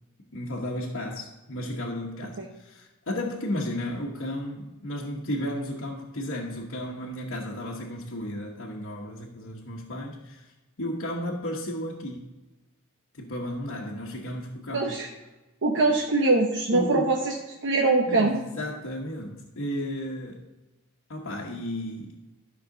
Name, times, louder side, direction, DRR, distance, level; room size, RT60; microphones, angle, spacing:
voice 1, 0.3-10.4 10.8-12.4 13.1-14.9 16.7-17.1 18.0-20.5 21.1-22.1, left 1 dB, 65° left, -4 dB, 1.2 m, -33 dB
voice 2, 14.7-15.1 15.6-17.4 17.6-18.4, right 3 dB, 60° right, 1 dB, 0.9 m, -23 dB
12.5 x 5.9 x 3.9 m, 1.1 s
head